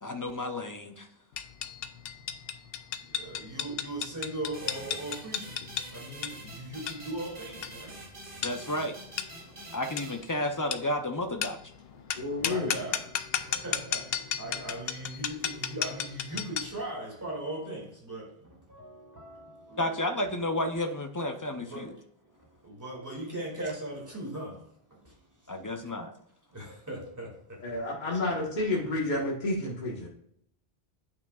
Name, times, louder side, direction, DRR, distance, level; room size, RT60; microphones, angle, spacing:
voice 1, 0.0-1.1 8.4-9.0 9.7-11.6 19.8-21.9 25.5-26.1, left 1 dB, 30° left, 0.4 m, -31 dB
sound 1, 1.4-16.8, left 8 dB, 75° left, 0.8 m, -35 dB
voice 2, 3.0-8.2 8.4-8.7 9.4-9.8 11.9-20.3 21.5-25.6 26.5-27.7 28.1-28.2, right 1 dB, 15° right, 2.3 m, -40 dB
sound 2, 4.5-10.9, right 2 dB, 55° right, 2.2 m, -47 dB
voice 3, 12.2-12.7 27.6-30.1, left 2 dB, 45° left, 1.5 m, -30 dB
9.1 x 5.7 x 2.3 m
omnidirectional pair, 1.0 m